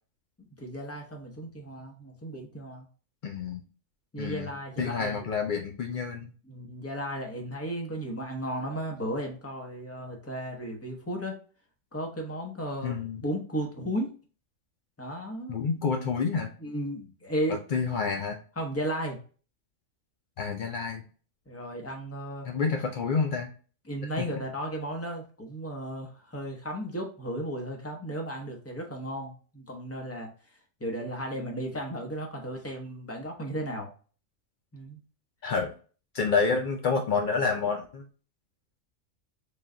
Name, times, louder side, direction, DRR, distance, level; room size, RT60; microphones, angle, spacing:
voice 1, 0.4-2.9 4.1-5.3 6.5-11.4 11.9-12.9 13.2-14.1 15.0-15.6 16.6-17.6 18.6-19.2 21.5-22.5 23.9-30.3 30.8-33.9 34.7-35.0, right 1 dB, 15° left, 1 dB, 0.7 m, -34 dB
voice 2, 3.2-3.6 4.2-4.5 4.8-6.3 12.8-13.2 15.5-16.5 17.5-18.4 20.4-21.1 22.4-23.5 24.2-24.3 35.4-35.7 36.1-38.1, left 5 dB, 80° left, 3 dB, 0.4 m, -28 dB
3.8 x 2.3 x 3.7 m, 0.38 s
omnidirectional pair, 1.4 m